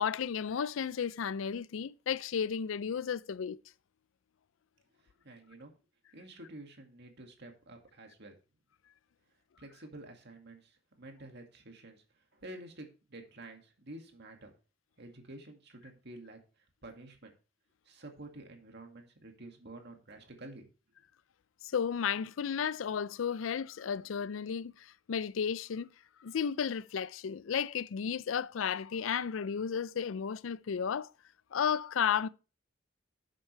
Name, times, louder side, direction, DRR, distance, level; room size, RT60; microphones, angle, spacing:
voice 1, 0.0-3.6 21.6-25.9 26.2-31.1 31.5-32.3, left 7 dB, 85° left, 0.4 m, -33 dB
voice 2, 5.0-5.7 6.1-8.4 9.6-14.5 15.0-17.3 17.8-20.7, right 2 dB, 60° right, 2.1 m, -50 dB
11.5 x 7.6 x 3.3 m
head